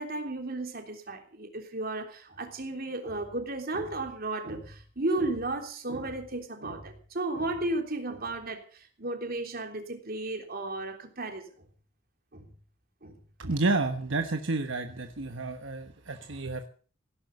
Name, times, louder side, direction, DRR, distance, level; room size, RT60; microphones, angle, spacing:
voice 1, 0.0-11.5 12.3-12.5 13.0-13.2, right 2 dB, 50° right, 4 dB, 3.5 m, -34 dB
voice 2, 13.4-16.7, right 3 dB, 75° right, 6 dB, 1.3 m, -30 dB
17.0 x 11.0 x 6.8 m, 0.43 s
head